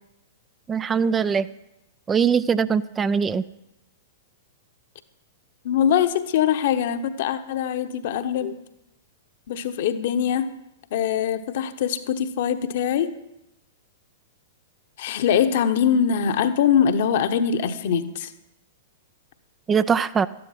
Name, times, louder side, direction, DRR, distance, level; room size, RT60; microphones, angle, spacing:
voice 1, 0.7-1.5 2.1-3.4 19.7-20.3, right 6 dB, 15° right, 14 dB, 0.4 m, -21 dB
voice 2, 5.6-8.6 9.5-10.5 10.9-13.1 15.0-18.3, left 8 dB, 50° left, 9 dB, 1.0 m, -22 dB
13.5 x 11.0 x 5.9 m, 0.87 s
figure-of-eight pair, 105°, 0 cm